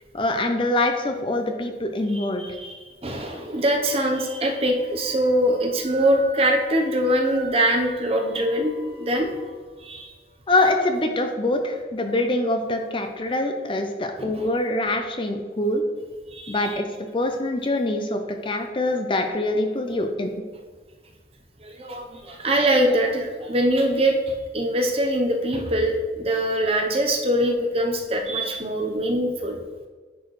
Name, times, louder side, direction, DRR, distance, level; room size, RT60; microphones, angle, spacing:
voice 1, 0.1-2.5 10.5-15.8 16.5-16.9 17.1-20.3, left 2 dB, 30° left, 5 dB, 0.5 m, -24 dB
voice 2, 2.1-2.8 3.0-8.7 9.0-9.4 9.8-10.1 14.2-14.5 16.3-16.7 21.6-29.6, right 1 dB, 35° right, 2 dB, 0.8 m, -23 dB
Wind instrument woodwind instrument, 3.5-9.4, right 4 dB, 65° right, 1.9 m, -43 dB
10.0 x 4.5 x 3.2 m, 1.4 s
head